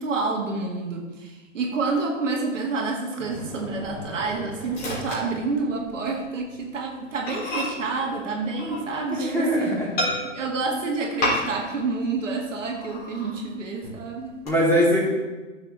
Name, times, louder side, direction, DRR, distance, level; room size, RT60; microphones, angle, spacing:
voice 1, 0.0-9.9 10.2-14.3, right 3 dB, 70° right, 1 dB, 1.9 m, -28 dB
Microwave oven, 3.2-6.1 6.4-6.6 6.9-7.0 7.3-9.3 10.0-10.6 11.2-11.8 12.1-12.2 12.7-13.4 13.8-14.5, left 1 dB, 25° left, 3.4 m, -31 dB
voice 2, 9.1-9.9 14.4-15.1, equal, 5° left, -6 dB, 3.3 m, -21 dB
14.0 x 7.0 x 3.4 m, 1.2 s
figure-of-eight pair, 115°, 39 cm